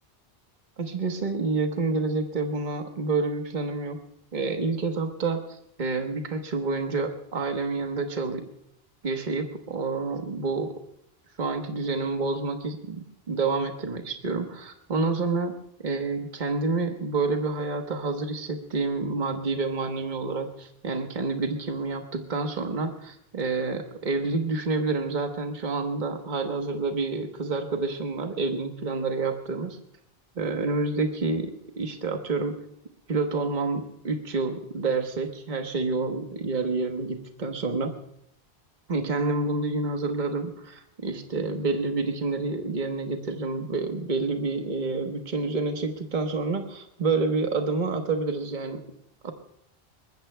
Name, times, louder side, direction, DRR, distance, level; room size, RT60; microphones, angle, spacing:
voice 1, 0.8-4.0 4.3-8.4 9.0-10.7 11.4-15.6 15.8-29.8 30.3-31.5 31.8-32.6 33.1-37.9 38.9-48.8 49.2-49.3, right 3 dB, 50° right, 4 dB, 1.3 m, -28 dB
23.0 x 20.5 x 2.2 m, 0.77 s
omnidirectional pair, 1.0 m